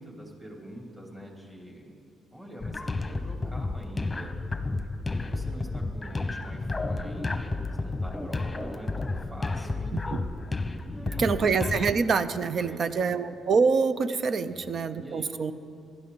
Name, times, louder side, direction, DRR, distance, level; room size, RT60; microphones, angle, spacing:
voice 1, 0.0-2.0 2.3-4.3 5.0-10.2 10.9-11.5 12.6-13.1 14.4-15.5, equal, 15° right, -1 dB, 3.2 m, -45 dB
sound 1, 2.6-11.9, left 3 dB, 20° left, 1.0 m, -31 dB
voice 2, 11.2-15.5, right 5 dB, 55° right, 13 dB, 0.6 m, -25 dB
20.5 x 12.5 x 4.0 m, 2.4 s
cardioid pair, 90°, 0 cm